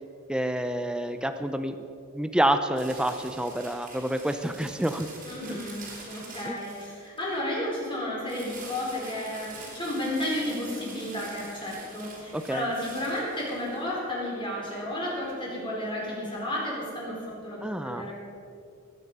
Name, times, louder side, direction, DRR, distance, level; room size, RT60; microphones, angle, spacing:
voice 1, 0.3-1.8 2.1-5.1 5.5-5.6 6.5-6.6 12.3-12.7 17.6-18.1, right 1 dB, 5° right, 8 dB, 0.4 m, -28 dB
sound 1, 2.8-7.3 8.2-13.9, right 3 dB, 40° right, 3.2 m, -45 dB
voice 2, 5.2-18.1, left 1 dB, 25° left, -4 dB, 4.3 m, -32 dB
19.5 x 9.4 x 5.5 m, 2.5 s
head